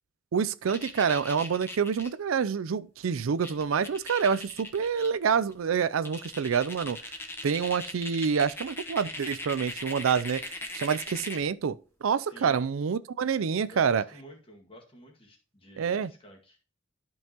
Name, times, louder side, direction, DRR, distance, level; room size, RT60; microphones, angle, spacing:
voice 1, 0.3-7.0 7.4-10.4 10.7-14.0 15.8-16.1, right 6 dB, 90° right, 0.4 m, -27 dB
sound 1, 0.7-2.1 3.2-3.3 3.4-5.1 5.5-5.6 6.1-11.5, left 2 dB, 10° left, 1.0 m, -39 dB
voice 2, 12.2-12.6 13.7-16.6, right 1 dB, 25° left, 1.8 m, -50 dB
12.0 x 5.5 x 2.9 m
head